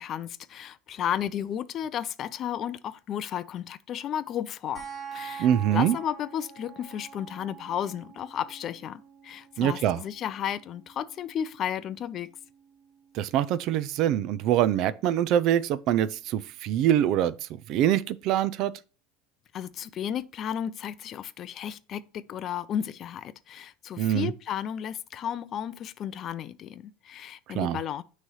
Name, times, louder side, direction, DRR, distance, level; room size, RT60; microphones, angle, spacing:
voice 1, 0.0-4.8 5.1-12.3 19.5-28.0, left 9 dB, 30° left, 0.4 m, -33 dB
sound 1, 4.7-15.7, right 7 dB, 10° right, 3.1 m, -47 dB
voice 2, 5.4-6.0 9.6-10.0 13.2-17.3 17.7-18.7 24.0-24.3 27.6-27.8, right 11 dB, 45° right, 0.4 m, -24 dB
6.3 x 3.1 x 5.5 m
supercardioid pair, 160°, 0 cm